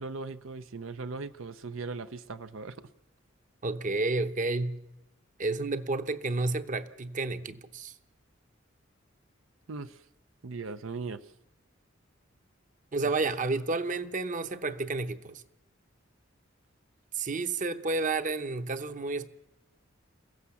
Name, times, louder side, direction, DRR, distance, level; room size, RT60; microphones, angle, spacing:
voice 1, 0.0-2.9 9.7-10.0 10.4-11.3, right 4 dB, 85° right, 0.7 m, -39 dB
voice 2, 3.6-4.8 5.4-7.9 12.9-15.4 17.1-19.3, right 3 dB, 40° right, 0.9 m, -31 dB
29.0 x 16.0 x 7.1 m
head